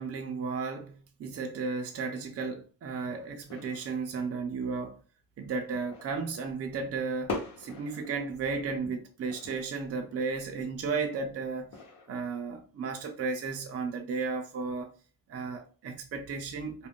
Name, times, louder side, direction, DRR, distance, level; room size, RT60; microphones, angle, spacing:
voice 1, 0.0-5.0 5.4-11.7 12.1-14.9 15.3-16.9, right 4 dB, 40° right, 0.4 m, -34 dB
sound 1, 1.9-2.0 3.4-4.3 4.7-4.8 5.4-6.9 7.2-8.4 8.8-11.1 11.6-12.2, left 3 dB, 70° left, 1.0 m, -43 dB
2.4 x 2.1 x 3.4 m
cardioid pair, 130°, 41 cm